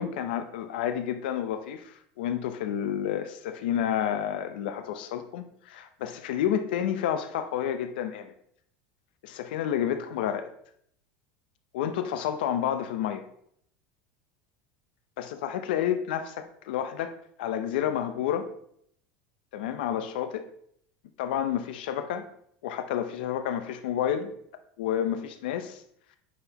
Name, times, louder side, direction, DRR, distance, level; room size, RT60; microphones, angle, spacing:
voice 1, 0.0-8.3 9.2-10.5 11.7-13.2 15.2-17.1 17.4-18.5 19.5-20.5 21.2-22.3 22.6-24.3 24.8-25.8, left 9 dB, 85° left, 9 dB, 0.8 m, -30 dB
9.5 x 5.8 x 3.0 m, 0.67 s
supercardioid pair, 145°, 5 cm